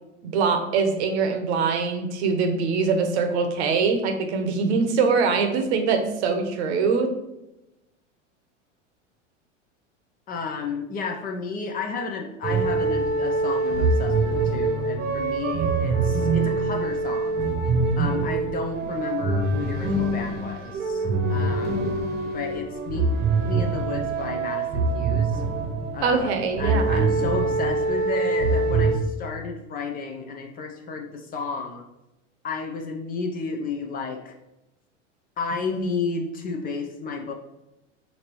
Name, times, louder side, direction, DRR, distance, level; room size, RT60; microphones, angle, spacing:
voice 1, 0.2-7.1 26.0-27.1, right 5 dB, 60° right, 5 dB, 0.8 m, -23 dB
voice 2, 10.3-17.4 18.0-21.9 22.2-23.1 23.4-25.4 25.9-31.8 32.4-34.3 35.4-37.3, left 4 dB, 25° left, 2 dB, 0.4 m, -32 dB
sound 1, 12.4-29.0, right 3 dB, 25° right, 0.9 m, -24 dB
5.2 x 2.7 x 3.0 m, 0.94 s
hypercardioid pair, 95°, 38 cm